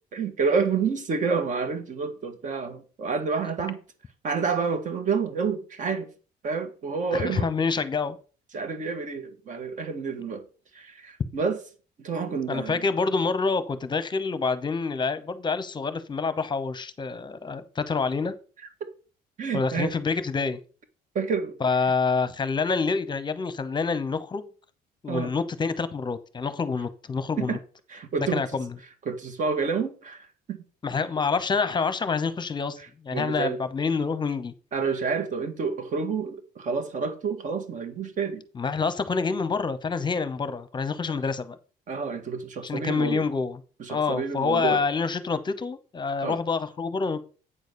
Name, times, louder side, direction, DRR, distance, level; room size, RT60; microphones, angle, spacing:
voice 1, 0.1-3.8 4.2-6.1 6.4-7.5 8.5-10.4 10.7-11.6 12.0-12.8 19.4-19.9 21.2-21.5 25.1-25.3 27.4-27.6 27.9-28.4 29.1-30.6 33.1-33.6 34.7-38.4 41.1-41.2 41.9-43.2 43.8-44.8 46.2-46.4, right 5 dB, 50° right, 1.8 m, -29 dB
voice 2, 7.1-8.2 12.5-18.3 19.5-20.6 21.6-24.5 25.0-27.6 28.2-28.8 30.8-32.8 33.0-34.5 38.5-41.6 42.6-43.6 43.9-47.2, left 4 dB, 25° left, 0.9 m, -27 dB
8.8 x 4.0 x 6.8 m
cardioid pair, 110°, 17 cm